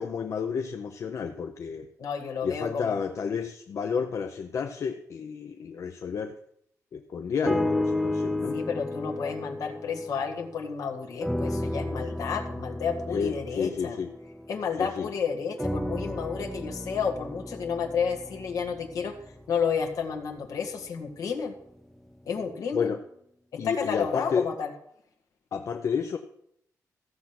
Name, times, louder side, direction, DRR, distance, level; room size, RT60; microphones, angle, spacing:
voice 1, 0.0-1.9 2.4-6.4 6.9-8.6 13.1-14.1 14.8-15.1 22.7-23.0 23.6-24.5 25.5-26.2, left 6 dB, 50° left, 5 dB, 0.7 m, -31 dB
voice 2, 2.0-3.0 8.5-14.0 14.5-19.2 19.5-21.5 22.2-22.9 23.6-24.7, left 6 dB, 65° left, 4 dB, 1.7 m, -31 dB
sound 1, 7.4-10.8 11.2-14.9 15.6-19.8 20.5-20.6, left 1 dB, ahead, 0.4 m, -33 dB
14.5 x 7.3 x 6.0 m, 0.72 s
wide cardioid pair, 180°, 6 cm